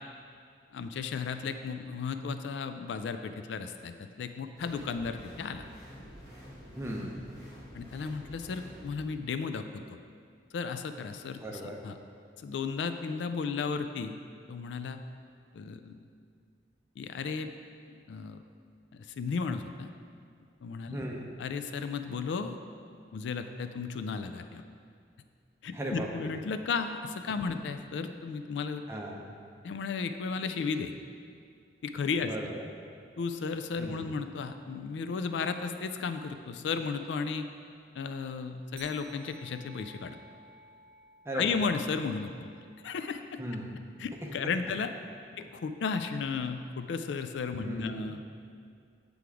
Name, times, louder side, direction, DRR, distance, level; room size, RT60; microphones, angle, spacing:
voice 1, 0.7-5.6 7.7-10.0 10.5-11.9 12.4-14.2 14.5-15.0 15.5-16.1 17.0-17.5 17.9-18.4 18.9-19.9 20.6-21.0 21.4-22.6 23.1-24.6 25.6-28.8 29.6-30.9 31.8-32.3 33.2-37.5 38.0-40.2 41.3-42.5 42.8-43.4 44.0-44.9 45.4-48.2, left 5 dB, 80° left, 8 dB, 0.3 m, -34 dB
sound 1, 4.6-9.0, equal, 20° left, 1.4 m, -49 dB
voice 2, 6.8-7.2 11.4-11.8 20.9-21.3 25.7-26.3 27.5-27.6 28.9-29.2 32.2-32.7 33.8-34.2 41.2-41.6 43.4-43.8 44.2-44.3 45.4-45.5 47.6-48.1, right 1 dB, 15° right, -1 dB, 0.6 m, -37 dB
sound 2, 38.8-43.7, right 3 dB, 55° right, 0.8 m, -57 dB
7.7 x 3.5 x 4.7 m, 2.2 s
head